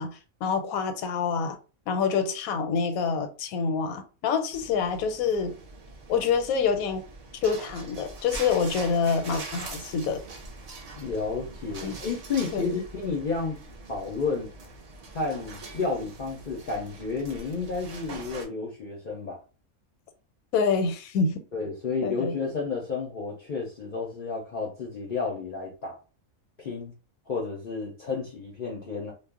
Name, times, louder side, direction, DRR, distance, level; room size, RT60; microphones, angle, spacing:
voice 1, 0.0-1.6 1.9-5.5 6.1-7.0 7.4-10.2 11.8-11.9 12.5-12.7 20.5-21.4 22.0-22.3, left 5 dB, 85° left, 1.0 m, -26 dB
sound 1, 4.5-18.4, right 3 dB, 80° right, 0.3 m, -43 dB
voice 2, 11.0-13.6 13.9-14.5 15.1-19.4 21.5-26.0 26.6-26.9 27.3-29.1, left 4 dB, 60° left, 0.5 m, -31 dB
2.4 x 2.0 x 3.5 m
omnidirectional pair, 1.4 m